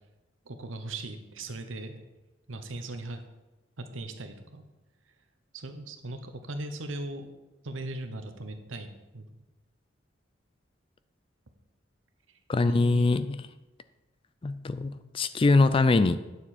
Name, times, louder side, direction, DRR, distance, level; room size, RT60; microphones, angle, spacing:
voice 1, 0.4-2.0 2.5-3.2 3.8-4.6 5.5-7.3 7.6-9.3 12.3-12.4 12.6-13.1, right 2 dB, 90° right, 7 dB, 1.0 m, -38 dB
voice 2, 12.5-13.4 14.4-16.2, left 3 dB, 30° left, 13 dB, 0.4 m, -23 dB
9.5 x 7.0 x 4.3 m, 1.1 s
head